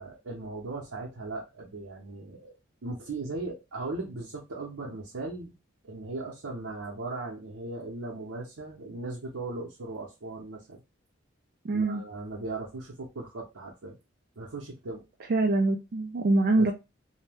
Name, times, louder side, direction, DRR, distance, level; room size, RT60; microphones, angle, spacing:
voice 1, 0.0-2.5 2.8-5.5 5.8-10.8 11.7-14.0 14.4-15.0 16.6-16.7, right 2 dB, 90° right, 0.7 m, -38 dB
voice 2, 11.6-12.0 15.3-16.7, right 2 dB, 45° right, 0.3 m, -24 dB
2.6 x 2.1 x 3.3 m
head